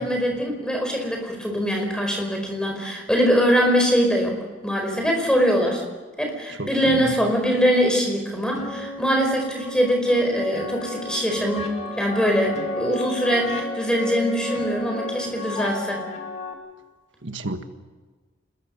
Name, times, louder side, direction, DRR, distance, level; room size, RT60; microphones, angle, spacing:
voice 1, 0.0-4.4 4.6-5.8 6.2-16.0, equal, 5° left, 2 dB, 4.7 m, -22 dB
voice 2, 6.6-7.1 17.2-17.6, right 2 dB, 65° right, 7 dB, 1.6 m, -31 dB
sound 1, 8.6-16.5, left 2 dB, 30° left, 2.5 m, -33 dB
27.5 x 21.5 x 5.4 m, 1.4 s
head